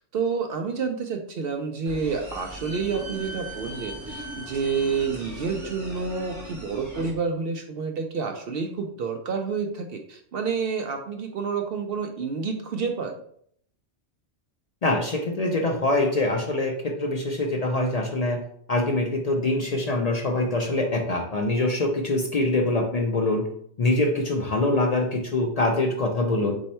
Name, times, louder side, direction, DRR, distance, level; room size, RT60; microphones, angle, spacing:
voice 1, 0.0-13.2, right 5 dB, 65° right, 4 dB, 0.7 m, -29 dB
sound 1, 1.9-7.1, equal, 15° right, 0.9 m, -39 dB
voice 2, 14.8-18.4 18.7-23.5 23.8-26.6, left 2 dB, 55° left, 2 dB, 0.4 m, -24 dB
4.3 x 2.7 x 4.2 m, 0.65 s
omnidirectional pair, 1.2 m